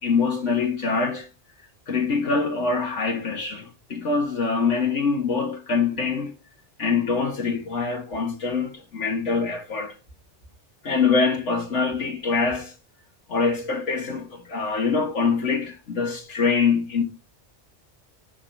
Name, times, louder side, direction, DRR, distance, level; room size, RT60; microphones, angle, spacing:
voice 1, 0.0-1.3 1.9-6.3 6.8-9.9 10.8-12.7 13.3-17.0, left 4 dB, 85° left, 1.7 m, -24 dB
5.3 x 5.1 x 5.9 m
omnidirectional pair, 1.2 m